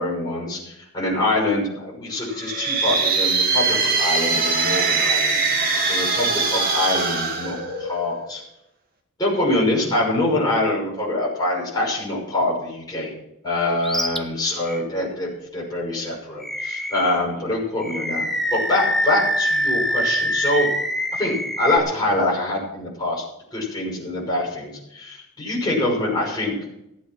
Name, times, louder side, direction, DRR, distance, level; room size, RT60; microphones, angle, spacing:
voice 1, 0.0-8.4 9.2-13.1 13.4-18.2 18.5-20.7 21.1-23.2 23.5-26.5, left 1 dB, 20° left, -5 dB, 6.0 m, -24 dB
sound 1, 2.3-8.2, right 4 dB, 45° right, 2.4 m, -22 dB
Animal, 13.8-14.2 14.7-14.8 16.4-17.2 17.8-21.8, equal, ahead, 0.8 m, -24 dB
15.0 x 8.3 x 6.1 m, 0.83 s
head